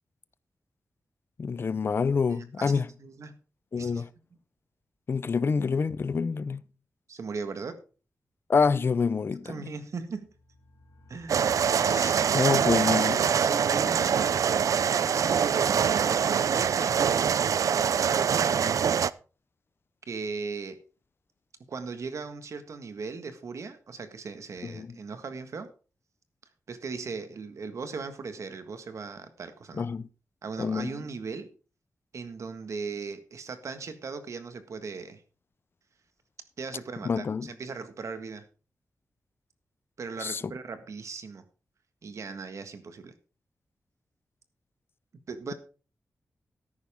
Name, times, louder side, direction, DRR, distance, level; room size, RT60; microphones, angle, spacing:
voice 1, 1.4-2.9 3.7-4.1 5.1-6.6 8.5-9.5 12.3-13.3 24.6-25.0 29.8-30.0 30.6-30.9 37.0-37.5 40.2-40.5, left 5 dB, 45° left, 0.5 m, -27 dB
voice 2, 2.3-2.7 3.0-3.4 3.8-4.0 7.1-7.8 9.4-10.3 11.1-11.5 13.0-17.3 18.1-19.0 20.1-20.8 21.7-25.7 26.7-29.9 30.4-31.5 32.1-35.2 36.6-38.4 40.0-41.4 42.0-43.2 45.3-45.5, right 4 dB, 60° right, 1.6 m, -38 dB
sound 1, 10.1-15.4, left 4 dB, 75° left, 2.2 m, -49 dB
sound 2, 11.3-19.1, right 7 dB, 80° right, 0.4 m, -24 dB
13.5 x 10.5 x 3.6 m
wide cardioid pair, 165°, 6 cm